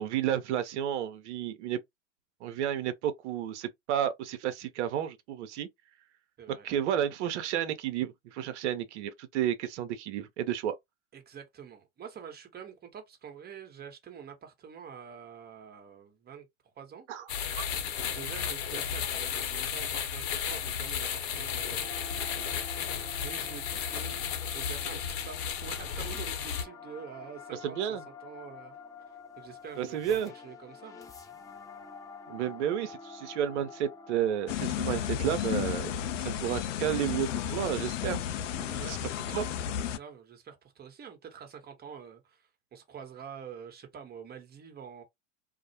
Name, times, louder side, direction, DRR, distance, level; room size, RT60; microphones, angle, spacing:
voice 1, 0.0-1.8 2.4-5.7 6.5-10.8 17.1-17.2 17.5-17.6 27.6-28.0 29.8-30.3 32.3-38.2 38.6-39.0 39.3-39.5, right 10 dB, 65° right, 0.7 m, -32 dB
voice 2, 11.1-16.5 16.8-17.1 18.0-28.8 29.4-31.0 38.7-39.0 39.9-45.0, right 7 dB, 25° right, 1.0 m, -47 dB
sound 1, 17.3-26.6, left 8 dB, 55° left, 0.9 m, -34 dB
sound 2, 21.8-37.5, left 4 dB, 10° left, 0.3 m, -49 dB
sound 3, 34.5-40.0, left 10 dB, 80° left, 0.5 m, -33 dB
2.3 x 2.1 x 2.8 m
hypercardioid pair, 95°, 37 cm